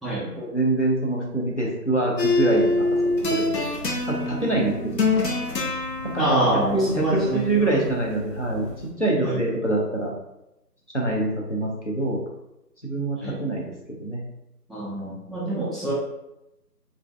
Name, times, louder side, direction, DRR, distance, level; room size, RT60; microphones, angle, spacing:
voice 1, 0.4-2.7 3.0-3.7 4.1-5.1 6.1-6.2 6.7-8.7 9.0-10.1 10.9-12.2 12.8-14.2, right 2 dB, 50° left, -3 dB, 0.5 m, -25 dB
sound 1, 2.2-8.9, left 2 dB, 80° left, 0.8 m, -26 dB
voice 2, 4.6-4.9 6.2-7.8 9.2-9.4 13.2-13.4 14.7-15.9, right 1 dB, ahead, -8 dB, 0.5 m, -26 dB
2.4 x 2.0 x 2.4 m, 0.89 s
figure-of-eight pair, 180°, 49 cm